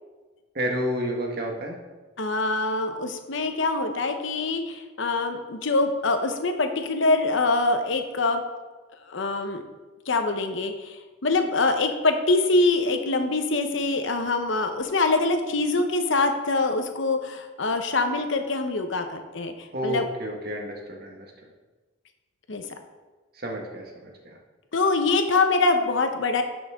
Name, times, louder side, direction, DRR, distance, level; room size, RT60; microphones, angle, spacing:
voice 1, 0.5-1.8 19.7-21.3 23.3-24.4, equal, 50° right, 0 dB, 1.6 m, -30 dB
voice 2, 2.2-8.4 9.1-9.6 10.1-20.0 22.5-22.6 24.7-26.4, left 3 dB, 70° left, 6 dB, 0.9 m, -24 dB
11.0 x 6.2 x 3.6 m, 1.3 s
head